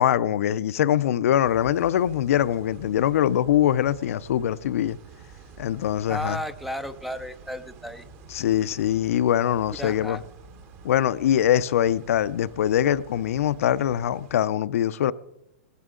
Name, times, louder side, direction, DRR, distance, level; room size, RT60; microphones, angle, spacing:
voice 1, 0.0-5.0 5.6-6.4 8.3-10.2 10.8-15.1, left 11 dB, 70° left, 0.5 m, -23 dB
sound 1, 1.4-14.3, right 4 dB, 30° right, 1.2 m, -49 dB
voice 2, 6.1-8.1 9.8-10.2, left 1 dB, ahead, 0.5 m, -33 dB
18.0 x 14.0 x 3.8 m
hypercardioid pair, 155°, 8 cm